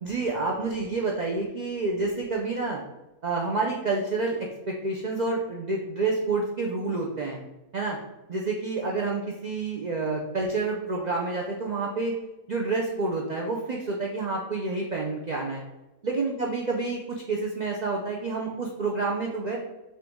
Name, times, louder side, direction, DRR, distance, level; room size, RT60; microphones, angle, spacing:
voice 1, 0.0-2.8 3.2-7.4 7.7-8.0 8.3-12.1 12.5-15.6 16.0-19.6, right 3 dB, 85° right, -1 dB, 0.4 m, -28 dB
5.5 x 2.7 x 3.5 m, 1.0 s
omnidirectional pair, 1.5 m